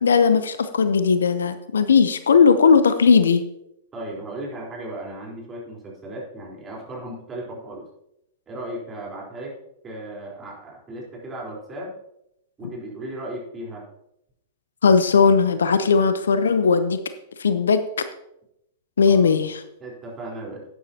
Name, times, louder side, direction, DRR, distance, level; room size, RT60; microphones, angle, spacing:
voice 1, 0.0-3.4 14.8-17.0 17.4-17.8 19.0-19.6, left 5 dB, 75° left, 12 dB, 0.7 m, -17 dB
voice 2, 3.9-7.9 8.5-9.5 9.8-11.9 12.6-13.9 19.1-19.3 19.8-20.7, right 1 dB, 20° right, -3 dB, 4.0 m, -36 dB
12.0 x 9.6 x 2.9 m, 0.80 s
figure-of-eight pair, 100°, 0 cm